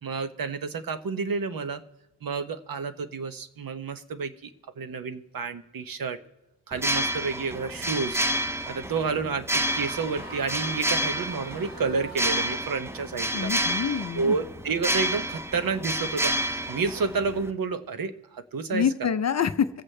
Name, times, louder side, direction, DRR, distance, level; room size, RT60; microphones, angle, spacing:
voice 1, 0.0-1.8 2.2-4.5 4.8-6.2 6.7-8.2 8.7-13.5 14.1-19.1, right 4 dB, 50° right, 10 dB, 0.9 m, -30 dB
sound 1, 6.7-17.5, right 1 dB, 5° right, 0.6 m, -29 dB
sound 2, 9.5-12.9, right 1 dB, 25° right, 4.7 m, -44 dB
voice 2, 13.3-14.4 18.7-19.7, left 7 dB, 40° left, 10 dB, 0.5 m, -26 dB
24.0 x 8.1 x 3.3 m, 1.0 s
wide cardioid pair, 130°, 43 cm